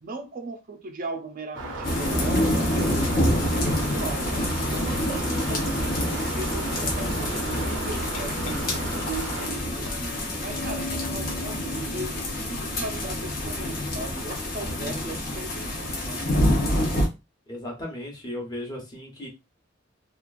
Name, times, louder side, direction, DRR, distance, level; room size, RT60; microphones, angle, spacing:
voice 1, 0.0-4.3 4.7-10.1 10.4-16.5, right 2 dB, 45° right, 0.4 m, -38 dB
sound 1, 1.5-9.5, right 2 dB, 85° right, 0.7 m, -34 dB
sound 2, 1.8-17.1, left 1 dB, 50° left, 0.8 m, -27 dB
Glass, 7.8-14.0, left 2 dB, 80° left, 0.4 m, -41 dB
voice 2, 17.5-19.3, left 1 dB, 20° left, 0.9 m, -36 dB
2.9 x 2.4 x 2.4 m
head